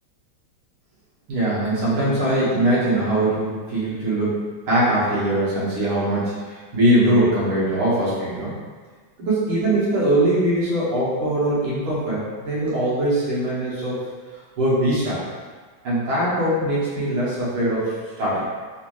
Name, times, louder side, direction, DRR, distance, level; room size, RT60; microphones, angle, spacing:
voice 1, 1.3-8.5 9.2-14.0 14.6-15.3 15.8-18.4, right 1 dB, 85° right, -9 dB, 2.1 m, -21 dB
4.3 x 2.6 x 3.0 m, 1.5 s
omnidirectional pair, 2.3 m